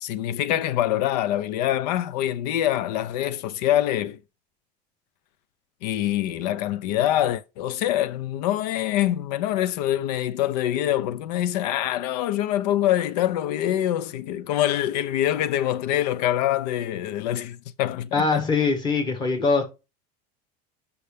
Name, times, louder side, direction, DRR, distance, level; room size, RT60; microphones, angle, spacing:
voice 1, 0.0-4.2 5.8-18.4 19.4-19.5, left 12 dB, 90° left, 0.5 m, -25 dB
voice 2, 18.1-19.6, left 4 dB, 20° left, 1.1 m, -22 dB
6.6 x 5.6 x 3.4 m
cardioid pair, 165°, 20 cm